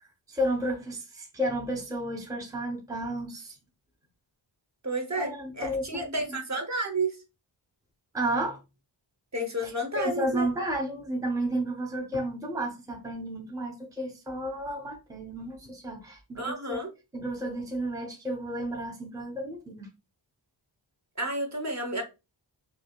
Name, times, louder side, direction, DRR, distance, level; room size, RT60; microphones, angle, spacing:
voice 1, 0.3-3.6 5.2-6.2 8.1-8.6 9.6-16.8 17.1-19.9, right 1 dB, 10° right, 0.6 m, -32 dB
voice 2, 4.8-7.2 9.3-10.5 16.3-16.9 21.2-22.0, right 1 dB, 35° right, 0.9 m, -31 dB
4.7 x 2.2 x 2.2 m
wide cardioid pair, 95°, 45 cm